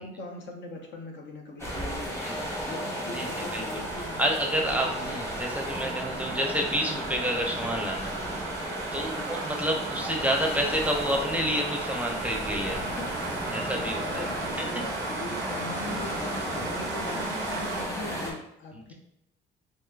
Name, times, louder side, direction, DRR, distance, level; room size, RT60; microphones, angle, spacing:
voice 1, 0.0-4.3 4.7-4.8 9.0-9.3 12.8-13.3 14.1-18.9, left 2 dB, 70° left, 2 dB, 0.6 m, -41 dB
sound 1, 1.6-18.3, equal, 15° left, 0.9 m, -34 dB
sound 2, 3.2-17.8, right 6 dB, 75° right, 0.4 m, -39 dB
voice 2, 4.2-8.1 8.9-12.8 13.5-14.2, equal, 5° right, 1 dB, 0.5 m, -29 dB
sound 3, 12.0-17.2, left 1 dB, 45° left, 1.2 m, -46 dB
3.6 x 2.7 x 2.3 m, 0.78 s
cardioid pair, 90°, 20 cm